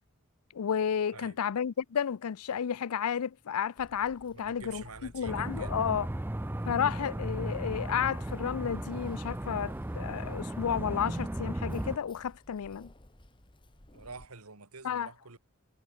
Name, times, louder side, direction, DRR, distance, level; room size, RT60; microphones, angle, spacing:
voice 1, 0.5-4.8 5.1-6.1 6.7-12.9 14.8-15.1, left 8 dB, 85° left, 0.5 m, -32 dB
Keys jangling, 3.8-14.3, left 1 dB, 20° left, 1.5 m, -56 dB
voice 2, 4.3-5.8 13.9-15.4, right 4 dB, 85° right, 2.6 m, -48 dB
sound 1, 4.6-14.4, equal, 45° left, 5.6 m, -62 dB
sound 2, 5.3-12.0, right 1 dB, 10° right, 0.4 m, -36 dB
head